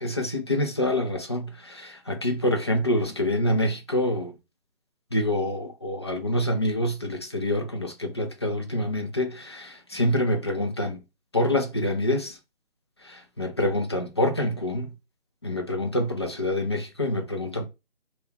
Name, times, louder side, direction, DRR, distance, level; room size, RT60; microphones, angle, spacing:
voice 1, 0.0-4.3 5.1-11.0 11.3-12.3 13.1-14.9 15.4-17.7, left 1 dB, 25° left, 0.4 m, -26 dB
2.5 x 2.2 x 3.6 m
figure-of-eight pair, 150°, 31 cm